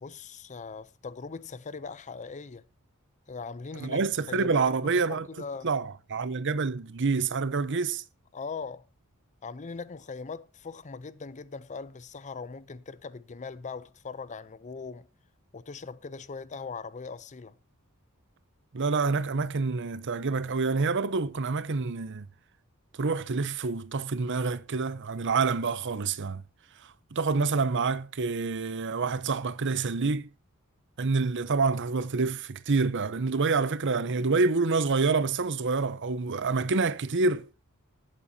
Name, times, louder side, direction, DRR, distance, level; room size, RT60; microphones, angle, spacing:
voice 1, 0.0-2.6 3.3-4.0 4.3-5.7 8.3-8.8 9.4-15.1 15.5-17.6, left 4 dB, 35° left, 0.5 m, -40 dB
voice 2, 3.8-5.3 5.6-8.0 18.7-22.3 23.0-26.4 27.1-30.3 31.0-37.5, right 4 dB, 55° right, 0.7 m, -27 dB
18.0 x 8.9 x 2.8 m
head